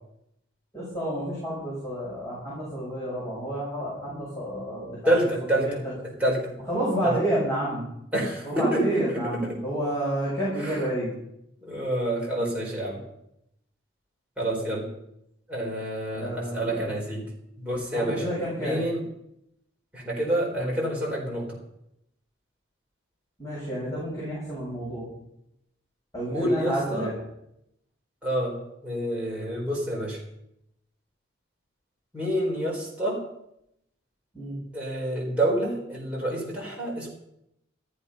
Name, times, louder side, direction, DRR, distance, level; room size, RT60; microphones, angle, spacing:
voice 1, 0.7-5.9 6.7-7.9 8.4-11.1 16.1-16.9 17.9-18.8 23.4-25.1 26.1-27.1 34.3-34.6, right 1 dB, 15° left, -8 dB, 7.4 m, -30 dB
voice 2, 5.0-5.8 6.2-6.5 7.0-7.2 8.1-9.6 10.6-10.8 11.6-13.0 14.4-14.8 15.5-17.2 17.6-18.2 18.6-19.0 19.9-21.6 26.3-27.1 28.2-30.2 32.1-33.2 34.7-37.1, right 1 dB, 5° right, -4 dB, 4.4 m, -28 dB
14.0 x 13.0 x 5.7 m, 0.80 s
head